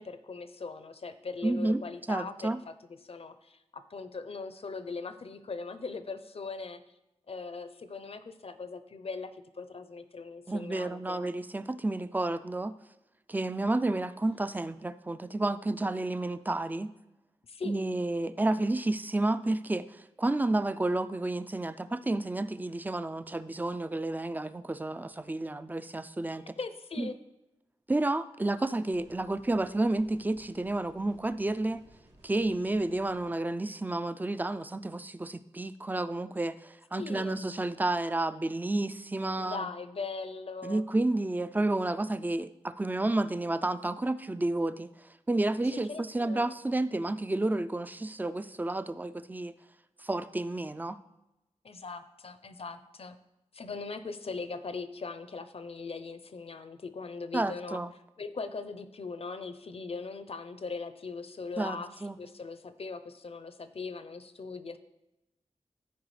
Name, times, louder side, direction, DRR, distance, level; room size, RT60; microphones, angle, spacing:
voice 1, 0.0-2.7 3.0-6.8 7.3-11.2 17.5-17.8 26.6-27.2 36.9-37.4 39.4-40.8 45.7-46.5 51.6-53.2 53.5-57.8 58.2-64.8, left 4 dB, 55° left, 11 dB, 0.6 m, -40 dB
voice 2, 1.4-1.8 2.1-2.6 10.5-12.7 13.3-16.9 17.6-26.6 27.0-27.1 27.9-31.8 32.2-39.7 40.6-44.9 45.3-49.5 50.0-51.0 57.3-57.9 61.6-62.2, right 2 dB, 15° right, 13 dB, 0.3 m, -31 dB
sound 1, 28.9-33.3, right 1 dB, 75° right, 2.8 m, -59 dB
13.5 x 4.8 x 3.2 m, 0.94 s
wide cardioid pair, 90°, 12 cm